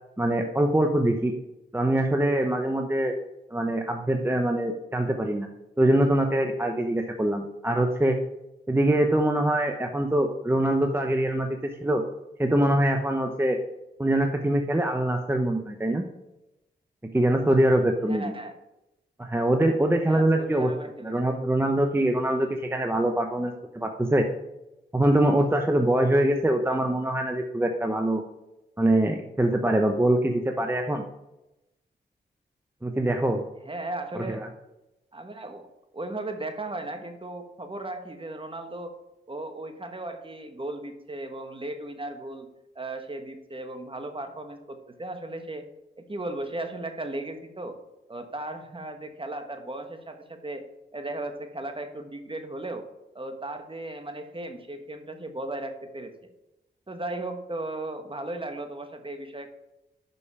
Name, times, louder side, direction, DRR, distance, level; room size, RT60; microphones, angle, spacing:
voice 1, 0.2-1.3 1.7-3.1 3.5-5.5 5.8-8.2 8.7-12.0 12.4-13.6 14.0-16.0 17.1-18.3 19.2-20.7 21.0-24.3 24.9-28.2 28.8-31.0 32.8-33.4 34.3-34.5, right 1 dB, 10° right, 4 dB, 0.9 m, -23 dB
voice 2, 18.1-18.6 20.0-21.4 33.7-34.5 35.1-35.7 35.9-38.9 39.3-42.5 42.7-45.7 46.0-47.8 48.1-50.6 50.9-52.9 53.1-56.1 56.9-59.5, right 2 dB, 30° right, 6 dB, 1.3 m, -36 dB
6.3 x 5.4 x 5.6 m, 0.93 s
supercardioid pair, 45°, 19 cm